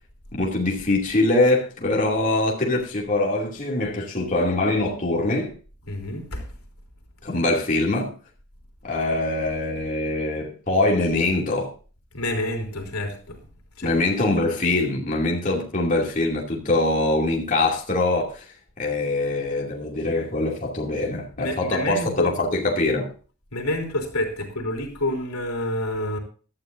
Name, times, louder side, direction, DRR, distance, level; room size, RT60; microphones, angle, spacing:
voice 1, 0.3-5.5 7.2-8.1 8.8-11.7 13.8-23.1, left 2 dB, 35° left, 2.6 m, -23 dB
voice 2, 5.8-6.5 12.1-13.5 13.8-14.0 21.4-22.4 23.5-26.2, left 1 dB, 80° left, 3.4 m, -28 dB
17.0 x 12.0 x 2.6 m
head